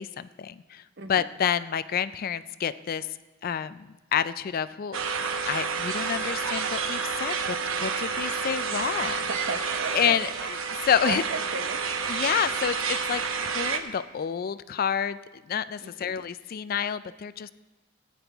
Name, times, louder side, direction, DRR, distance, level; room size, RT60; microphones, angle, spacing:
voice 1, 0.0-0.8 1.1-3.1 3.4-5.0 5.5-9.3 9.9-11.2 12.1-15.2 15.4-17.5, left 8 dB, 45° left, 15 dB, 0.3 m, -29 dB
sound 1, 4.9-13.8, right 5 dB, 75° right, 0.9 m, -29 dB
voice 2, 9.3-10.2 11.1-11.2 11.5-12.1 15.8-16.1, right 3 dB, 55° right, 6 dB, 1.1 m, -35 dB
17.0 x 9.9 x 3.5 m, 1.1 s
head